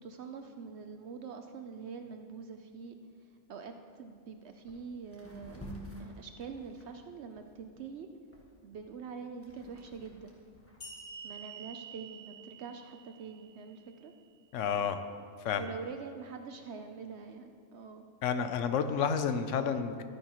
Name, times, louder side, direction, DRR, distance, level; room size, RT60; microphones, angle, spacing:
voice 1, 0.0-3.0 3.5-5.6 6.0-8.1 8.6-10.3 11.2-14.1 15.5-18.1, right 5 dB, 65° right, 6 dB, 0.8 m, -45 dB
sound 1, 4.2-4.3 4.6-4.8 5.1-7.8 8.3-10.8, right 1 dB, 10° left, 1.3 m, -49 dB
sound 2, 10.8-14.2, right 5 dB, 55° left, 2.1 m, -48 dB
voice 2, 14.5-15.0 15.4-15.7 18.2-20.0, left 7 dB, 75° left, 9 dB, 0.9 m, -30 dB
12.5 x 9.8 x 3.0 m, 2.3 s
omnidirectional pair, 1.4 m